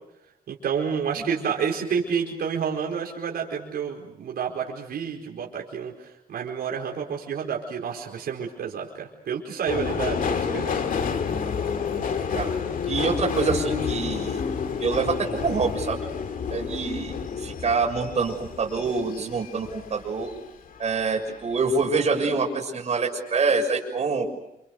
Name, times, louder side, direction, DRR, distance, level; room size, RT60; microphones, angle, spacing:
voice 1, 0.5-5.9 6.3-10.8, right 7 dB, 90° right, -1 dB, 4.7 m, -29 dB
Subway metro underground, 9.7-20.4 20.8-21.5 21.7-21.9, left 6 dB, 65° left, 2.3 m, -29 dB
voice 2, 12.9-14.4 14.8-16.1 16.5-20.3 20.8-24.3, right 4 dB, 45° right, 1 dB, 6.8 m, -26 dB
29.0 x 28.0 x 6.7 m, 0.85 s
wide cardioid pair, 150°, 16 cm